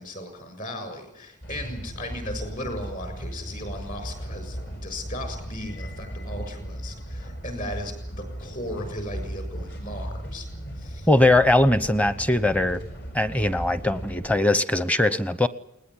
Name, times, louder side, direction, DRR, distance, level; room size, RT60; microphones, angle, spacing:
voice 1, 0.0-10.5 10.8-11.1, left 1 dB, 40° left, 8 dB, 7.0 m, -36 dB
sound 1, 1.4-14.4, equal, 55° left, 6.9 m, -36 dB
voice 2, 11.1-12.8 13.1-15.5, left 2 dB, 5° left, 14 dB, 0.9 m, -20 dB
20.5 x 20.0 x 9.8 m, 0.79 s
head